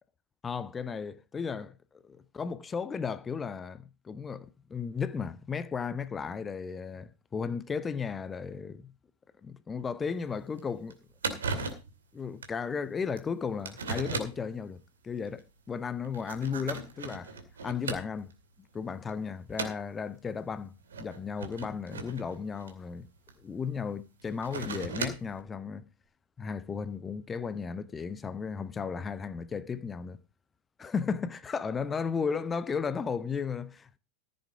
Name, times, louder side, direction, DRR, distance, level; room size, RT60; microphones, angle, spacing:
voice 1, 0.4-8.9 9.4-11.0 12.1-17.3 17.6-18.3 18.7-23.1 23.4-25.9 26.4-30.2 30.8-34.0, left 6 dB, 20° left, 0.7 m, -35 dB
sound 1, 10.1-10.2 10.6-10.7 10.9-11.0 11.2-11.9 12.4-12.6 13.2-13.3 13.7-14.5 15.3-15.4 16.0-18.3 18.8-19.1 19.5-19.9 20.8-23.3 24.2-25.4, right 4 dB, 65° right, 2.3 m, -37 dB
14.5 x 7.9 x 4.8 m
figure-of-eight pair, 90°, 0 cm